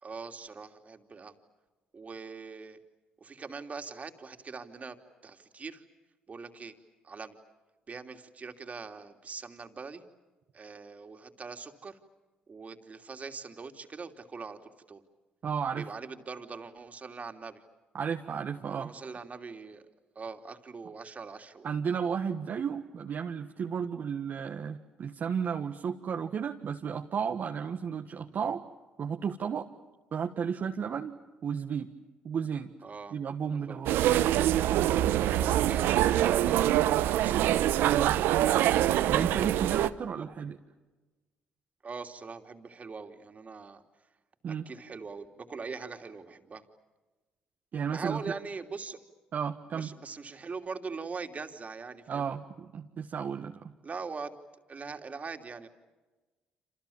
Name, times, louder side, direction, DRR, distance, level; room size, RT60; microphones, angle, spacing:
voice 1, 0.0-1.3 1.9-2.8 3.2-5.0 5.2-5.8 6.3-6.7 7.0-7.4 7.9-10.0 10.5-12.0 12.5-15.0 15.8-17.6 18.8-19.8 20.1-21.7 32.8-33.1 33.5-33.8 35.3-37.5 40.2-40.3 41.8-43.8 44.7-46.6 47.9-49.0 49.7-52.4 53.8-54.3 54.7-55.7, right 4 dB, 40° right, 5 dB, 3.0 m, -42 dB
voice 2, 15.4-15.9 17.9-18.9 21.6-28.6 29.0-29.7 30.1-31.9 32.2-32.7 33.1-34.0 37.8-38.2 39.1-40.6 44.4-44.7 47.7-48.2 49.3-49.9 52.1-53.7, right 7 dB, 55° right, 3 dB, 1.5 m, -33 dB
sound 1, 33.9-39.9, right 12 dB, 75° right, 0.9 m, -25 dB
28.5 x 28.0 x 7.3 m, 1.2 s
hypercardioid pair, 55°, 4 cm